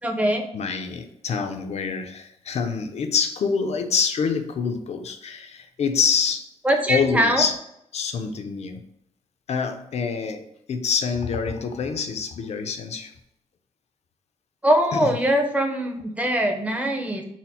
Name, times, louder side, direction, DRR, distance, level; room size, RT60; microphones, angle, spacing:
voice 1, 0.0-0.4 6.6-7.4 14.6-17.2, right 1 dB, 10° right, 3 dB, 0.6 m, -22 dB
voice 2, 0.5-6.5 6.9-7.6 7.9-8.8 9.5-13.1 14.9-15.1, left 5 dB, 60° left, 7 dB, 0.5 m, -26 dB
4.2 x 2.1 x 4.2 m, 0.76 s
cardioid pair, 115°, 12 cm